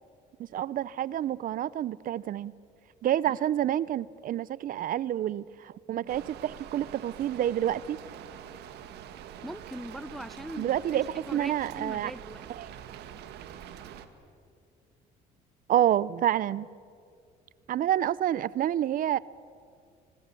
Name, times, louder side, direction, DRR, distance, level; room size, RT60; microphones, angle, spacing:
voice 1, 0.5-2.5 3.0-8.0 10.6-11.1 11.3-12.1 12.6-12.7 15.7-16.7 17.7-19.2, right 11 dB, 55° right, 21 dB, 0.6 m, -28 dB
Rain, 6.1-14.1, right 9 dB, 80° right, 1.7 m, -45 dB
voice 2, 9.4-11.0 11.3-12.4, equal, ahead, 17 dB, 0.5 m, -41 dB
25.5 x 22.5 x 8.4 m, 2.3 s
cardioid pair, 110°, 17 cm